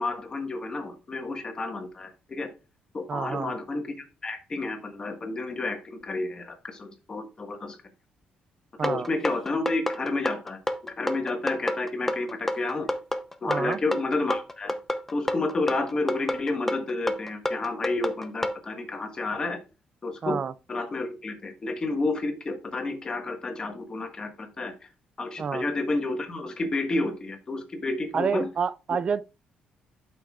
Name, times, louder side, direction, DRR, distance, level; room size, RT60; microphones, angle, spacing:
voice 1, 0.0-2.5 2.9-3.9 4.2-7.8 8.8-12.9 13.4-14.7 15.1-19.6 20.0-20.4 20.7-24.7 25.2-28.5, left 2 dB, 25° left, 1.5 m, -30 dB
voice 2, 3.1-3.6 8.8-9.1 13.5-13.8 20.2-20.5 25.4-25.6 28.1-29.2, right 6 dB, 35° right, 0.4 m, -28 dB
sound 1, 8.8-18.6, left 1 dB, 10° left, 0.6 m, -29 dB
11.5 x 6.0 x 2.4 m
cardioid pair, 140°, 3 cm